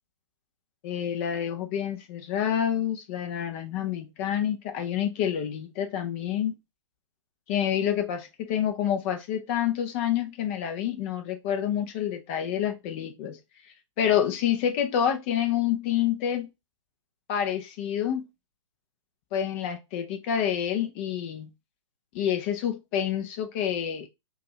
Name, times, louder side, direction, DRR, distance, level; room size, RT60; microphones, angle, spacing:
voice 1, 0.8-6.5 7.5-13.4 14.0-16.5 17.3-18.3 19.3-21.5 22.1-24.1, left 9 dB, 25° left, 0.6 m, -28 dB
4.7 x 2.4 x 2.9 m
figure-of-eight pair, 125°, 16 cm